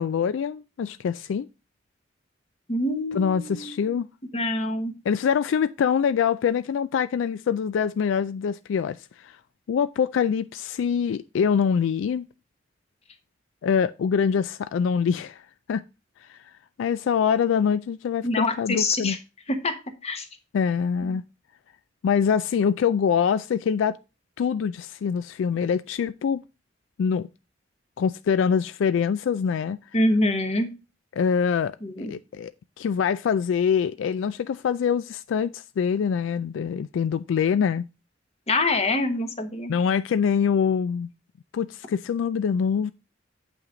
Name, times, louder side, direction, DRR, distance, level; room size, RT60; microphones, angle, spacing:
voice 1, 0.0-1.5 3.1-4.1 5.1-9.3 9.7-12.3 13.6-15.4 15.7-15.8 16.3-16.4 16.8-19.2 20.5-21.2 22.0-24.0 24.4-26.4 27.0-27.3 28.0-29.8 31.1-32.5 32.8-37.9 39.7-41.1 41.5-42.9, left 7 dB, 80° left, 0.3 m, -24 dB
voice 2, 2.7-3.9 4.3-4.9 18.2-19.2 19.5-19.7 20.0-20.3 29.9-30.7 31.8-32.1 38.5-39.7, left 2 dB, 35° left, 1.2 m, -25 dB
8.3 x 5.8 x 3.8 m
head